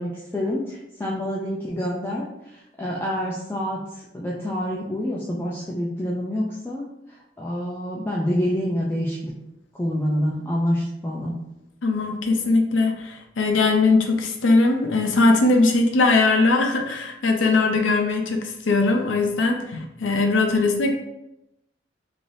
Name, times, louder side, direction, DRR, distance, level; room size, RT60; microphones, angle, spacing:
voice 1, 0.0-2.3 2.8-6.9 7.4-9.3 9.8-11.3, equal, 10° left, -5 dB, 0.3 m, -27 dB
voice 2, 11.8-20.9, left 3 dB, 85° left, 3 dB, 0.5 m, -20 dB
3.3 x 2.6 x 2.6 m, 0.88 s
head